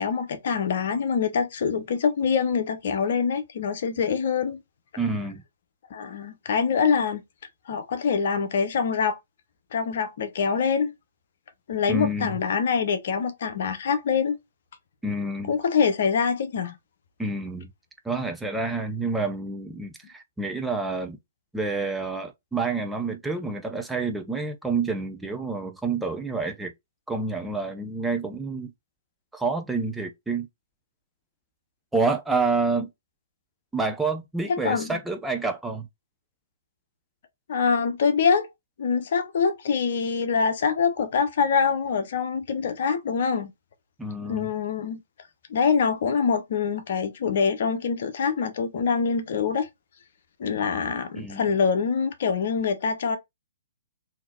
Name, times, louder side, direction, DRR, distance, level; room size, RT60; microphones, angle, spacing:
voice 1, 0.0-4.6 5.9-7.2 7.7-9.2 9.7-10.9 11.7-14.4 15.5-16.8 34.5-35.0 37.5-38.5 38.8-43.5 44.2-45.0 45.5-49.7 50.4-53.2, left 6 dB, 55° left, 0.9 m, -25 dB
voice 2, 5.0-5.4 11.9-12.4 15.0-15.5 17.2-17.7 18.0-21.2 21.5-26.7 27.1-28.7 29.3-30.5 31.9-32.9 33.7-35.9 44.0-44.5 51.2-51.4, right 3 dB, 5° right, 0.5 m, -28 dB
3.8 x 2.9 x 2.4 m
figure-of-eight pair, 125°, 0 cm